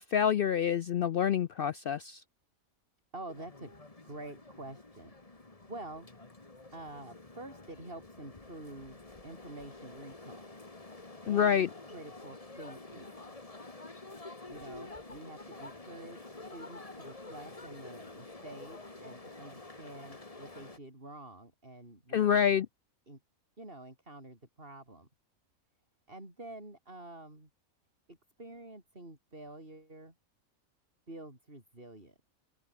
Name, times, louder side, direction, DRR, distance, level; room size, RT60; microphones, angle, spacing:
voice 1, 0.0-2.2 11.3-11.7 22.1-22.7, left 8 dB, 70° left, 0.5 m, -27 dB
voice 2, 3.1-3.7 4.0-6.1 6.7-10.6 11.2-13.4 14.5-22.6 23.1-23.2 23.6-25.1 26.1-27.5 28.1-30.1 31.1-32.1, right 2 dB, 40° right, 6.1 m, -48 dB
sound 1, 3.3-20.8, left 2 dB, 25° left, 2.0 m, -49 dB
open air
omnidirectional pair, 1.5 m